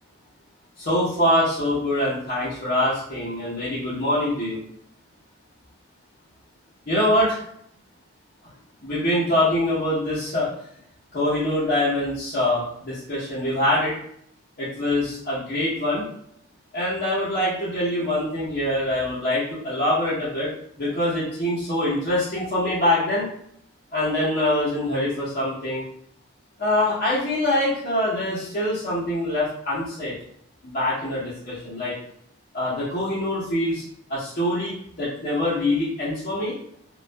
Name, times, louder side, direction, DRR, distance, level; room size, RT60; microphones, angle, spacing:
voice 1, 0.8-4.6 6.9-7.4 8.8-10.5 11.1-13.9 14.6-16.0 16.7-20.5 20.8-23.2 23.9-25.8 26.6-30.1 30.6-31.9 32.5-33.8 34.1-36.5, left 1 dB, 50° left, -10 dB, 0.8 m, -24 dB
2.5 x 2.3 x 2.2 m, 0.70 s
head